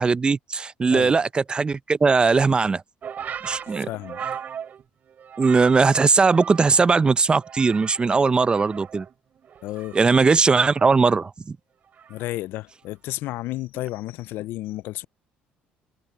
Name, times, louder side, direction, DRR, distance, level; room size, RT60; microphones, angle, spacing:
voice 1, 0.0-2.8 3.4-3.9 5.4-9.1 9.9-11.6, right 4 dB, 25° right, 0.5 m, -19 dB
sound 1, 3.0-6.9 7.2-8.1 8.4-11.1 12.0-12.3, right 8 dB, 50° right, 3.5 m, -38 dB
voice 2, 3.8-4.2 9.6-10.0 12.1-15.1, left 16 dB, 75° left, 0.4 m, -32 dB
cardioid pair, 95°, 4 cm